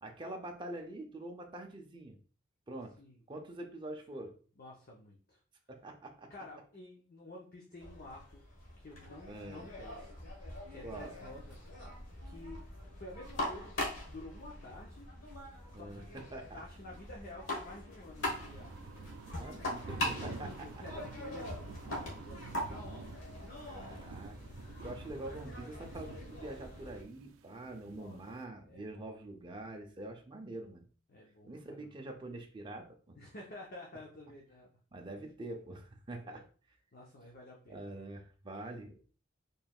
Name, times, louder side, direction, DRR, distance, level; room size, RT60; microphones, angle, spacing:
voice 1, 0.0-2.2 2.7-2.9 3.3-4.3 5.7-6.3 9.3-9.7 10.8-11.2 15.7-16.0 16.3-16.6 19.2-20.7 23.7-24.4 24.8-30.8 31.4-33.2 34.9-36.4 37.7-39.1, right 2 dB, 25° right, 2 dB, 0.5 m, -45 dB
voice 2, 4.6-5.4 6.3-8.5 8.8-10.1 10.7-11.6 12.2-12.6 13.0-15.1 15.7-16.2 16.5-18.8 20.2-23.0 27.8-29.2 31.1-31.9 33.2-34.8 35.2-35.3 36.3-36.4 36.9-37.9, left 1 dB, 45° left, -1 dB, 0.7 m, -51 dB
sound 1, 7.8-27.0, left 1 dB, 70° left, 1.3 m, -42 dB
sound 2, 18.2-28.4, right 4 dB, 85° right, 0.4 m, -49 dB
4.5 x 3.2 x 2.3 m, 0.40 s
head